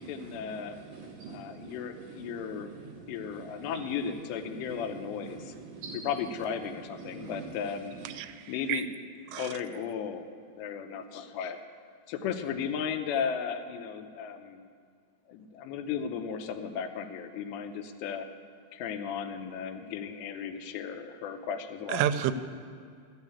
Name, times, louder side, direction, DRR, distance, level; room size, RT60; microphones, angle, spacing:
voice 1, 0.0-0.8 1.3-2.7 3.1-5.5 5.9-7.9 8.5-8.9 9.4-10.3 10.6-11.6 12.1-14.7 15.3-18.3 18.7-22.0, left 7 dB, 85° left, 6 dB, 2.9 m, -35 dB
voice 2, 0.5-2.2 2.5-3.4 3.7-3.8 4.7-4.8 5.3-6.1 7.0-7.4, right 4 dB, 65° right, -1 dB, 2.5 m, -45 dB
voice 3, 8.1-8.8 9.3-9.5 21.9-22.3, right 11 dB, 85° right, 11 dB, 2.7 m, -30 dB
13.0 x 6.5 x 8.3 m, 2.2 s
omnidirectional pair, 4.9 m